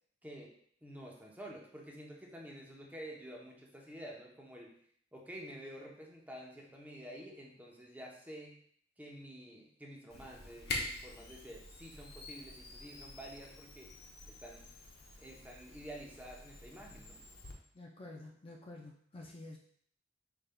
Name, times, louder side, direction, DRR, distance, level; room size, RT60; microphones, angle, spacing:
voice 1, 0.2-4.7 5.1-8.6 9.0-13.9 14.3-14.7 15.2-17.2, equal, 10° right, -2 dB, 0.7 m, -49 dB
Camera, 10.1-17.5, left 2 dB, 55° left, 0.8 m, -46 dB
voice 2, 17.7-19.6, left 2 dB, 30° left, -1 dB, 0.4 m, -49 dB
5.0 x 3.5 x 2.2 m, 0.62 s
head